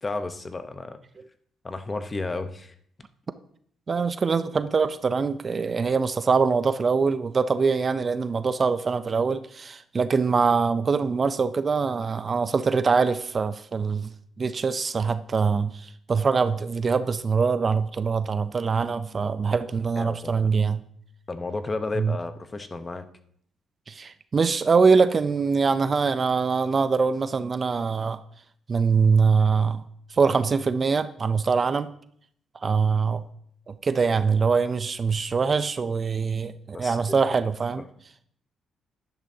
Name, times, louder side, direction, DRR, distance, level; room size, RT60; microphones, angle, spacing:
voice 1, 0.0-1.0 1.6-2.7 20.0-20.4 21.3-23.1 36.7-37.0 37.8-37.9, left 3 dB, 25° left, 9 dB, 0.8 m, -32 dB
voice 2, 3.9-20.8 21.9-22.2 23.9-28.2 28.7-29.8 30.1-31.9 32.6-33.2 33.7-37.8, right 5 dB, 40° right, 12 dB, 0.5 m, -23 dB
11.0 x 10.5 x 2.8 m, 0.64 s
cardioid pair, 90°, 0 cm